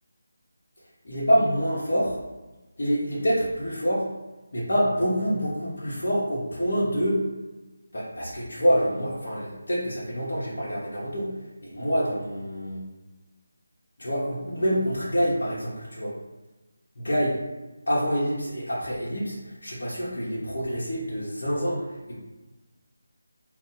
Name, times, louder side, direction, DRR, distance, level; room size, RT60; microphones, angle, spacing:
voice 1, 1.0-2.2 2.8-4.1 4.5-7.3 7.9-12.9 14.0-16.2 17.0-17.4 17.9-22.2, equal, 65° left, -8 dB, 1.1 m, -26 dB
2.7 x 2.6 x 3.8 m, 1.1 s
figure-of-eight pair, 165°, 0 cm